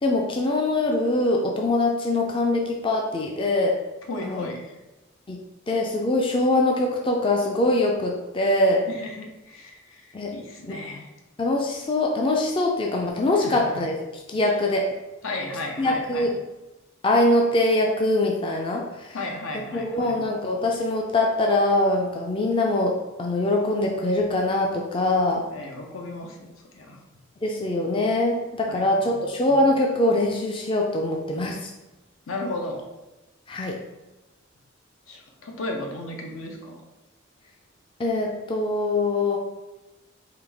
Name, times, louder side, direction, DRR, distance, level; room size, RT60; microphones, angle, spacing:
voice 1, 0.0-3.8 4.2-4.5 5.3-5.4 5.7-8.8 10.1-10.3 10.7-10.8 11.4-13.9 14.3-14.9 15.8-16.3 17.0-19.2 19.7-25.4 27.4-31.7 33.5-33.8 38.0-39.4, left 2 dB, 25° left, 0 dB, 0.3 m, -23 dB
voice 2, 4.1-4.7 8.9-11.1 13.4-13.7 14.4-14.5 15.2-16.3 19.1-20.2 25.5-27.0 28.7-29.3 32.3-32.8 35.1-36.8, left 2 dB, 85° left, 2 dB, 0.7 m, -35 dB
3.9 x 2.6 x 3.4 m, 1.0 s
head